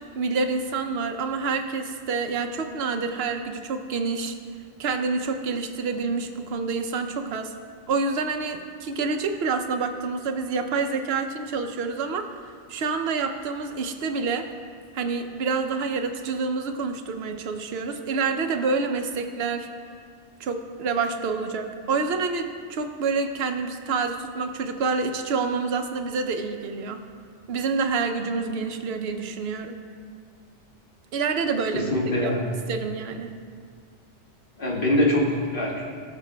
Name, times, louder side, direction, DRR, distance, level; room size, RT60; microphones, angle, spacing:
voice 1, 0.1-4.4 4.8-7.5 7.9-12.3 12.7-14.5 14.9-19.7 20.4-27.0 27.5-29.8 31.1-32.0 32.2-32.3 32.7-33.3, right 4 dB, 65° right, 6 dB, 0.8 m, -27 dB
voice 2, 31.7-32.4 34.6-35.9, left 1 dB, 50° left, -3 dB, 1.6 m, -23 dB
17.0 x 6.2 x 2.2 m, 2.1 s
omnidirectional pair, 1.2 m